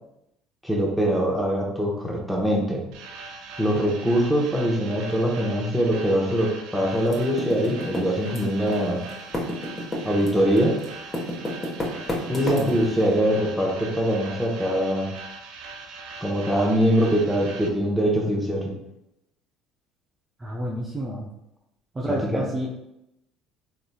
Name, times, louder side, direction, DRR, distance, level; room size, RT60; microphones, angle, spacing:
voice 1, 0.6-2.8 3.6-9.0 10.0-10.8 12.3-15.1 16.2-18.7 22.1-22.4, equal, ahead, -2 dB, 1.0 m, -23 dB
sound 1, 2.9-17.7, right 4 dB, 70° right, 0.4 m, -41 dB
Typing, 7.1-8.8 9.0-13.0, left 1 dB, 25° left, 1.1 m, -30 dB
voice 2, 12.4-12.8 20.4-21.3 21.9-22.7, equal, 20° right, -3 dB, 0.6 m, -30 dB
3.8 x 3.1 x 2.3 m, 0.86 s
hypercardioid pair, 70°, 0 cm